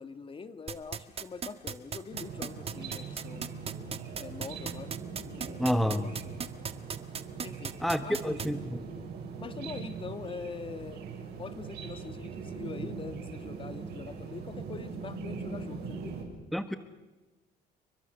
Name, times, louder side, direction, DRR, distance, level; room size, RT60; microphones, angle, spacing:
voice 1, 0.0-3.6 4.2-4.9 5.3-6.4 7.4-7.7 8.0-8.4 9.4-16.2, left 5 dB, 30° left, 9 dB, 2.1 m, -43 dB
sound 1, 0.7-8.5, right 6 dB, 35° right, 1.7 m, -36 dB
sound 2, 2.1-16.2, right 5 dB, 75° right, 7.7 m, -41 dB
voice 2, 5.6-6.0 7.8-8.8 16.5-16.8, equal, ahead, 9 dB, 1.3 m, -29 dB
29.5 x 23.5 x 6.9 m, 1.1 s
cardioid pair, 110°, 17 cm